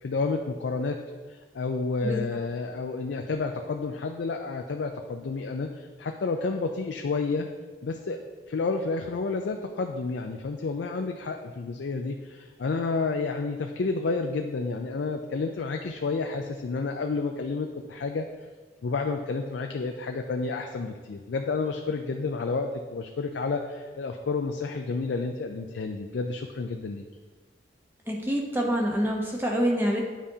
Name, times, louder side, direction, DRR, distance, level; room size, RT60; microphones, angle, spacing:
voice 1, 0.0-1.0 1.3-7.5 7.8-8.2 8.5-18.3 18.8-27.0, left 4 dB, 85° left, 4 dB, 0.4 m, -30 dB
voice 2, 28.1-30.0, equal, 10° right, -1 dB, 0.8 m, -26 dB
9.2 x 5.0 x 2.8 m, 1.4 s
head